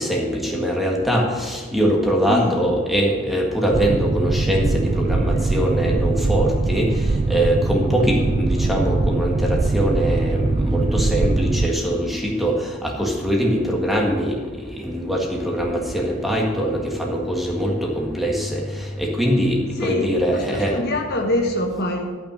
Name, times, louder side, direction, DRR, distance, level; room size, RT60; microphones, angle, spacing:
voice 1, 0.0-14.4 14.8-20.8, equal, ahead, -2 dB, 1.7 m, -22 dB
Boat Water vehicle, 3.7-11.7, right 3 dB, 25° right, 0.3 m, -21 dB
voice 2, 19.7-22.1, left 1 dB, 50° left, 2 dB, 1.3 m, -25 dB
12.5 x 6.0 x 6.4 m, 1.4 s
head